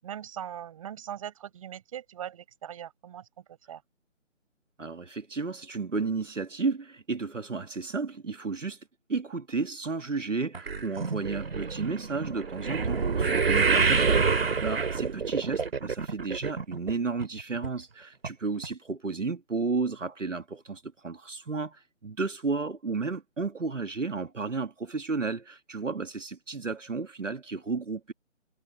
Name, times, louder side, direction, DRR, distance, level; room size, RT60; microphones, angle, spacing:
voice 1, 0.0-3.2 3.5-3.8, right 10 dB, 25° right, 5.9 m, -40 dB
voice 2, 4.8-8.8 9.1-28.1, right 4 dB, 75° right, 1.6 m, -33 dB
sound 1, 10.5-16.9 17.2-17.7 18.2-18.3 18.6-18.7, right 5 dB, 50° right, 2.3 m, -27 dB
figure-of-eight pair, 155°, 37 cm